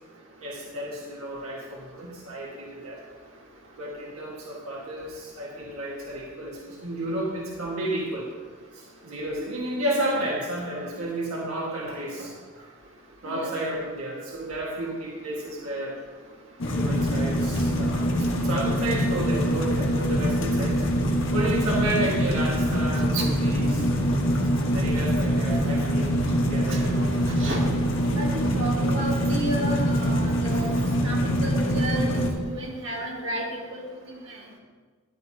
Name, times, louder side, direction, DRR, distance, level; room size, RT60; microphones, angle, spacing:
voice 1, 0.4-3.0 3.8-8.3 8.7-12.7 13.2-15.9 16.7-20.9 21.3-23.9 24.7-26.2 26.5-27.1, right 1 dB, 85° right, -3 dB, 1.7 m, -31 dB
sound 1, 16.6-32.3, equal, 60° left, 1.4 m, -24 dB
voice 2, 27.3-27.6 28.1-30.7 31.0-33.4 33.7-33.8 34.1-34.2, right 1 dB, 60° right, -3 dB, 2.2 m, -32 dB
14.0 x 10.0 x 2.9 m, 1.5 s
head